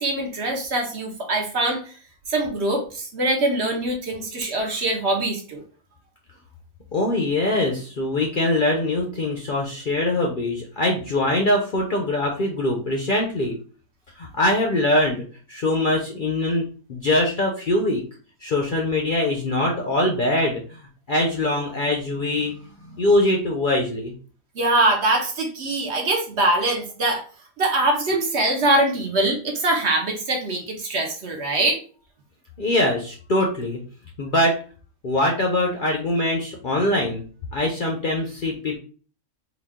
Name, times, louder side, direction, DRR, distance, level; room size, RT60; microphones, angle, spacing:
voice 1, 0.0-1.9 2.3-5.6 24.5-27.2 27.6-31.8, right 2 dB, 55° right, 1 dB, 1.1 m, -23 dB
voice 2, 6.9-13.6 14.2-18.0 18.4-20.8 21.1-22.5 22.8-24.1 32.6-33.8 34.2-34.6 35.0-37.2 37.5-38.8, left 1 dB, 50° left, 0 dB, 0.6 m, -23 dB
3.9 x 2.3 x 3.5 m, 0.40 s
omnidirectional pair, 1.5 m